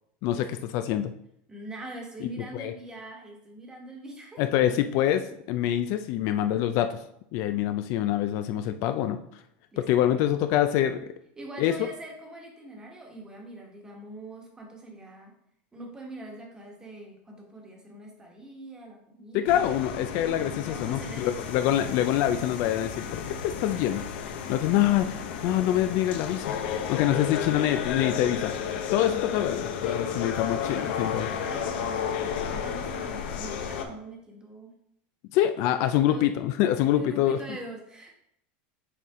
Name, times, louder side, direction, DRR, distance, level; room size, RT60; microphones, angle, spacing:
voice 1, 0.7-1.1 2.5-2.7 4.4-7.0 7.3-9.2 9.8-11.1 11.6-11.7 19.3-25.1 25.4-26.6 26.9-28.5 28.9-31.3 35.3-37.4, left 12 dB, 55° left, 9 dB, 0.4 m, -25 dB
voice 2, 1.5-4.4 9.7-10.2 11.4-15.3 15.7-19.7 20.6-21.5 24.4-24.9 26.7-28.4 29.8-31.0 31.3-34.7 36.1-36.3 36.7-38.2, right 1 dB, 15° right, 1 dB, 1.3 m, -43 dB
sound 1, 19.5-33.8, left 7 dB, 75° left, 0.8 m, -33 dB
6.6 x 4.2 x 3.6 m, 0.73 s
supercardioid pair, 140°, 6 cm